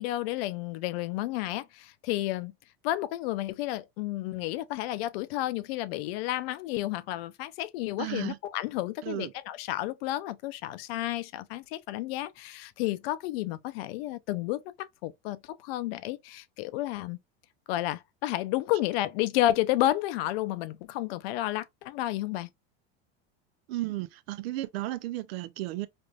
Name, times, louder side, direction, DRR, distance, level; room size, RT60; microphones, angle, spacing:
voice 1, 0.0-2.5 2.8-17.2 17.7-22.5, left 15 dB, 75° left, 0.5 m, -31 dB
voice 2, 8.0-8.4 9.0-9.3 23.7-25.9, right 16 dB, 75° right, 0.5 m, -34 dB
3.4 x 2.4 x 2.3 m
supercardioid pair, 110°, 31 cm